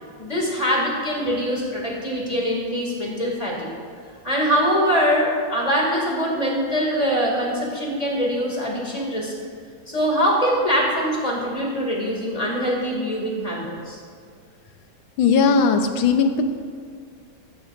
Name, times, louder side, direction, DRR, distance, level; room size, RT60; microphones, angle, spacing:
voice 1, 0.2-3.7 4.2-9.3 9.9-14.0, equal, 15° left, -2 dB, 2.5 m, -23 dB
voice 2, 15.2-16.4, left 5 dB, 70° left, 6 dB, 1.6 m, -18 dB
15.0 x 14.0 x 2.6 m, 2.1 s
omnidirectional pair, 2.3 m